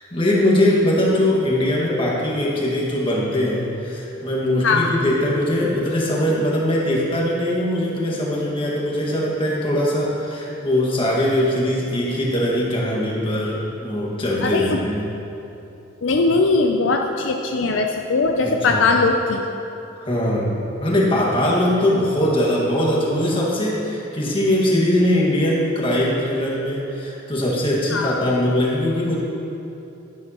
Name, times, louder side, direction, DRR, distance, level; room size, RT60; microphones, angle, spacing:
voice 1, 0.1-15.1 18.4-18.8 20.0-29.2, left 1 dB, 30° left, -4 dB, 1.8 m, -21 dB
voice 2, 14.4-14.8 16.0-19.4 27.9-28.3, left 3 dB, 70° left, 3 dB, 0.5 m, -20 dB
11.5 x 10.5 x 3.0 m, 2.9 s
head